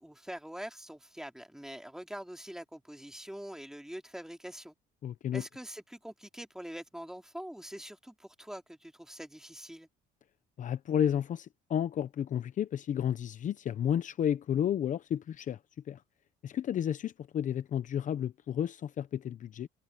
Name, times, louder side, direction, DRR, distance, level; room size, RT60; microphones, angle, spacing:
voice 1, 0.0-4.7 5.3-9.9, equal, 5° right, 2.6 m, -44 dB
voice 2, 5.0-5.4 10.6-15.6 15.9-16.0 16.4-19.7, left 9 dB, 50° left, 0.8 m, -32 dB
cardioid pair, 110°, 17 cm